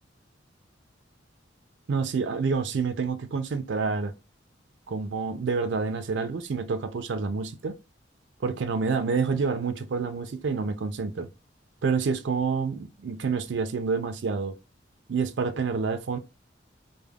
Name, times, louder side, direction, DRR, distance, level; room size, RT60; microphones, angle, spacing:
voice 1, 1.9-4.1 4.9-7.8 8.4-11.3 11.8-14.5 15.1-16.2, right 5 dB, 70° right, 0.4 m, -28 dB
3.3 x 2.1 x 2.2 m
head